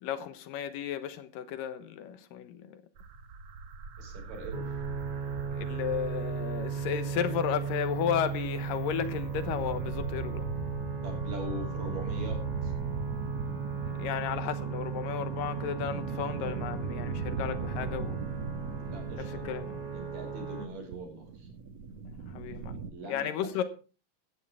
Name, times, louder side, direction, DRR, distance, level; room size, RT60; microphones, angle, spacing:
voice 1, 0.0-2.8 5.6-10.5 14.0-18.2 19.1-19.8 22.3-22.8 23.1-23.6, left 9 dB, 80° left, 2.8 m, -34 dB
sound 1, 3.0-22.9, right 4 dB, 55° right, 2.4 m, -39 dB
voice 2, 4.0-4.8 11.0-12.7 18.8-19.5 19.9-21.5 22.9-23.6, right 1 dB, 75° right, 6.4 m, -42 dB
sound 2, 4.5-20.7, right 6 dB, 35° right, 0.6 m, -36 dB
16.5 x 14.0 x 3.5 m
omnidirectional pair, 3.9 m